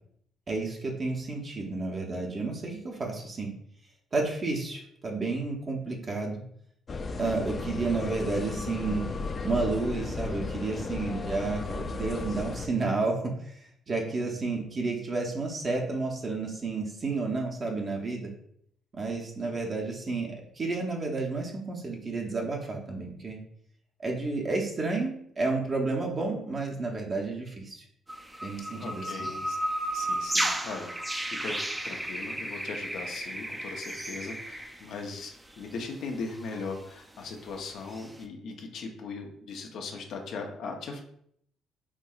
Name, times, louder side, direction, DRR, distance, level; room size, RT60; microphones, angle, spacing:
voice 1, 0.5-3.5 4.1-6.4 7.2-9.0 9.4-13.1 13.5-18.3 18.9-23.4 24.0-27.8 28.4-29.3, right 3 dB, 40° right, 0 dB, 0.7 m, -31 dB
sound 1, 6.9-12.7, left 3 dB, 40° left, 0.4 m, -34 dB
sound 2, 28.1-35.2 35.6-35.8 36.3-36.7 37.9-38.1, right 1 dB, 15° right, 0.5 m, -33 dB
voice 2, 28.7-29.6 29.9-31.6 31.8-41.0, left 4 dB, 70° left, 3 dB, 0.7 m, -39 dB
4.5 x 2.7 x 2.3 m, 0.67 s
supercardioid pair, 70°, 0 cm